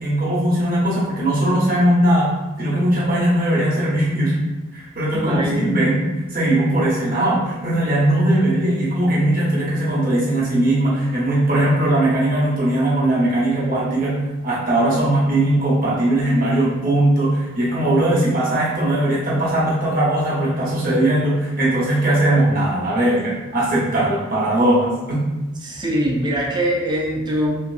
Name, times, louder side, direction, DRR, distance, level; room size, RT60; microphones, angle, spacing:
voice 1, 0.0-4.4 4.7-14.2 14.4-25.2, right 1 dB, 45° right, -6 dB, 1.0 m, -19 dB
voice 2, 5.1-5.7 25.6-27.6, right 1 dB, 20° right, -3 dB, 0.4 m, -22 dB
2.9 x 2.8 x 2.5 m, 1.0 s
head